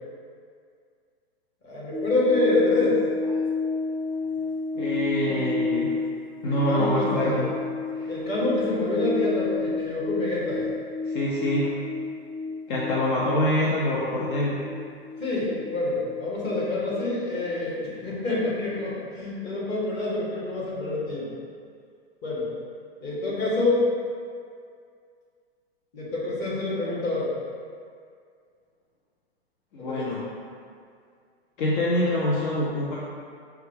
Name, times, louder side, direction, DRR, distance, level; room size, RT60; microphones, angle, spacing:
voice 1, 1.6-3.0 5.2-5.3 6.5-7.5 8.1-10.7 15.2-21.4 22.2-22.5 23.0-23.9 25.9-27.3 29.8-30.1, left 2 dB, 30° left, -7 dB, 1.3 m, -27 dB
sound 1, 1.9-18.5 18.7-18.9, left 3 dB, 15° left, 0.4 m, -31 dB
voice 2, 4.7-5.9 6.4-7.5 7.9-8.1 11.1-11.7 12.7-14.7 29.7-30.2 31.6-33.0, left 1 dB, 55° left, -5 dB, 0.7 m, -25 dB
5.5 x 2.3 x 3.3 m, 2.2 s
hypercardioid pair, 115°, 32 cm